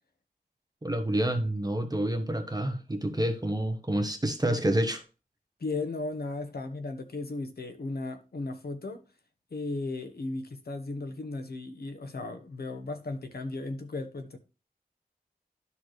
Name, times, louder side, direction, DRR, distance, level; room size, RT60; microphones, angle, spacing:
voice 1, 0.8-5.0, right 1 dB, 25° right, 1.1 m, -28 dB
voice 2, 5.6-9.0 9.5-14.4, left 3 dB, 75° left, 1.2 m, -36 dB
12.0 x 4.2 x 3.2 m
wide cardioid pair, 65°, 16 cm